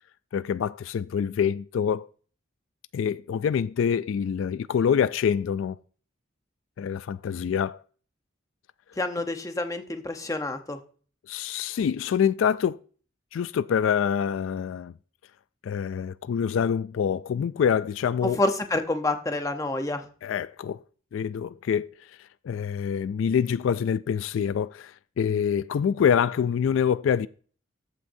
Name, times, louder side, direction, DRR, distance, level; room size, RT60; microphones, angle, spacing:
voice 1, 0.3-2.1 2.9-5.8 6.8-7.8 9.2-9.3 11.3-12.8 13.3-14.9 15.6-18.4 20.2-20.8 21.1-21.9 22.4-27.3, left 7 dB, 80° left, 0.3 m, -26 dB
voice 2, 9.0-10.8 18.2-20.0, left 2 dB, 15° left, 0.8 m, -28 dB
14.0 x 6.0 x 2.7 m
head